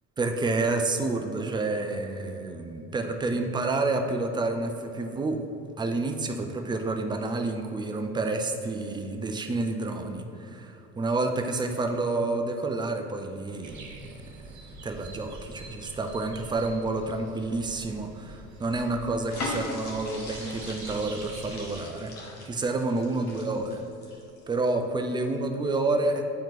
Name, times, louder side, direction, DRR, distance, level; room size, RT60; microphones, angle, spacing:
voice 1, 0.2-5.4 5.8-22.1 22.5-23.8 24.5-26.2, right 2 dB, 10° right, 5 dB, 0.3 m, -29 dB
sound 1, 13.6-21.8, right 2 dB, 40° right, 1.0 m, -45 dB
sound 2, 19.3-24.7 25.1-25.3, left 2 dB, 80° left, 1.1 m, -39 dB
9.2 x 4.4 x 2.4 m, 2.8 s
figure-of-eight pair, 60°, 43 cm